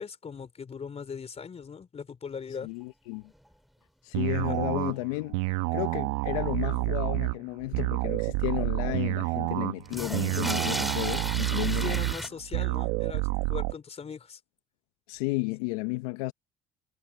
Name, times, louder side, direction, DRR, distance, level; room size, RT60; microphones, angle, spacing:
voice 1, 0.0-2.7 11.8-14.4, left 6 dB, 35° left, 4.0 m, -39 dB
voice 2, 2.6-3.3 4.0-5.4 5.7-12.0 15.1-16.3, left 23 dB, 80° left, 0.9 m, -33 dB
sound 1, 2.8-2.9 3.1-3.2 3.5-3.6 4.2-4.3 9.8-12.3, equal, ahead, 2.8 m, -34 dB
sound 2, 4.1-13.7, right 23 dB, 80° right, 1.3 m, -29 dB
hypercardioid pair, 70°, 18 cm